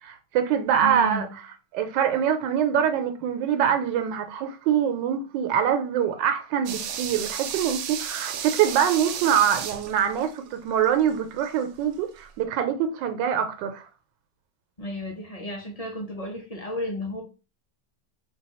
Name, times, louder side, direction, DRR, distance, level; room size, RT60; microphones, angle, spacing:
voice 1, 0.0-1.3 1.7-13.9, right 9 dB, 85° right, 1.3 m, -24 dB
voice 2, 0.8-1.3 14.8-17.2, equal, 35° left, 0.6 m, -33 dB
sound 1, 6.7-11.6 11.9-12.0, right 8 dB, 70° right, 0.9 m, -34 dB
4.3 x 2.3 x 4.1 m
omnidirectional pair, 1.9 m